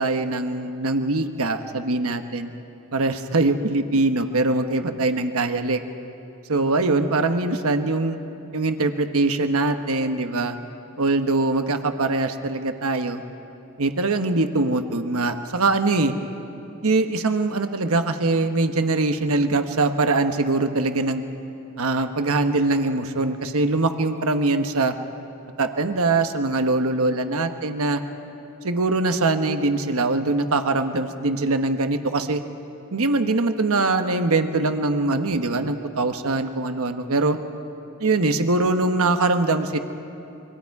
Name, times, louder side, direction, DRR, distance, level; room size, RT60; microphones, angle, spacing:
voice 1, 0.0-2.5 2.9-5.8 6.5-8.2 8.5-10.6 11.0-13.2 13.8-16.1 16.8-21.2 21.8-24.9 25.6-28.0 28.6-32.4 32.9-37.4 38.0-39.8, right 2 dB, 70° right, 7 dB, 1.2 m, -22 dB
28.0 x 24.0 x 4.8 m, 2.8 s
head